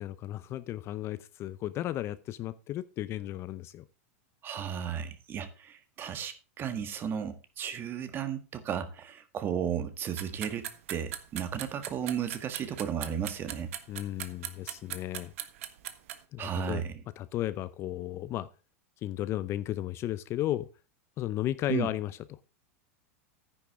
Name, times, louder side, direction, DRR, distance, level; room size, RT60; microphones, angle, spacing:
voice 1, 0.0-3.8 13.9-15.3 16.3-16.8 17.2-18.5 19.0-20.7 21.2-22.4, left 13 dB, 35° left, 15 dB, 0.5 m, -34 dB
voice 2, 4.4-13.7 16.4-16.9 21.7-21.9, right 8 dB, 30° right, 10 dB, 1.6 m, -34 dB
sound 1, 10.2-16.2, right 12 dB, 70° right, 1.4 m, -38 dB
10.0 x 10.0 x 3.6 m, 0.31 s
supercardioid pair, 135°, 8 cm